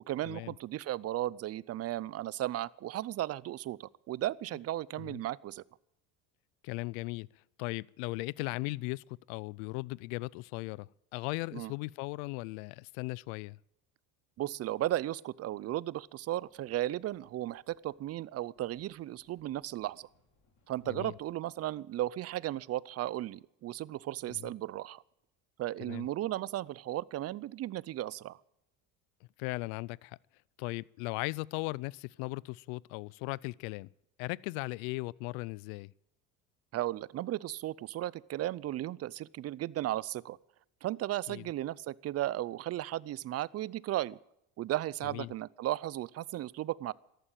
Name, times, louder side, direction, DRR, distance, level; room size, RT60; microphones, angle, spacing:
voice 1, 0.1-5.6 11.5-11.7 14.4-20.1 20.7-25.0 25.6-28.4 36.7-40.4 40.8-44.2 44.6-46.9, right 14 dB, 35° right, 0.5 m, -35 dB
voice 2, 6.6-7.3 7.6-13.6 20.9-21.1 24.4-24.5 25.9-26.1 29.4-30.2 30.6-33.9 34.2-35.9 41.3-41.5 45.0-45.3, left 23 dB, 80° left, 0.5 m, -38 dB
sound 1, 16.4-21.4, left 2 dB, 45° left, 5.3 m, -72 dB
14.0 x 11.5 x 9.0 m
supercardioid pair, 110°, 41 cm